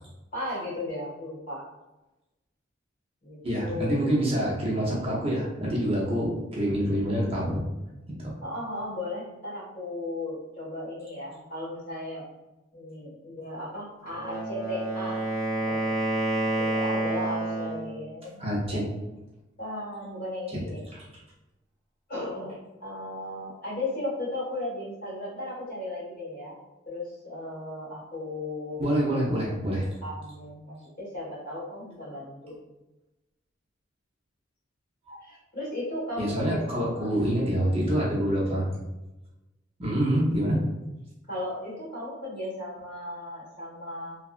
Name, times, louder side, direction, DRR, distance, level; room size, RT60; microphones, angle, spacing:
voice 1, 0.3-1.6 3.2-4.2 8.4-12.2 12.7-15.2 15.5-15.9 16.3-18.4 18.7-18.9 19.6-20.8 22.1-26.6 26.9-29.2 30.0-32.6 35.2-37.1 41.3-44.2, left 1 dB, 50° left, -7 dB, 1.4 m, -36 dB
voice 2, 3.4-7.7 8.2-8.3 18.4-18.8 20.5-20.6 20.9-21.0 28.8-29.9 35.1-35.2 36.2-38.7 39.8-40.6, equal, 30° right, -5 dB, 0.6 m, -26 dB
Wind instrument woodwind instrument, 14.1-17.9, right 2 dB, 15° left, 0.9 m, -29 dB
2.8 x 2.3 x 2.4 m, 1.0 s
head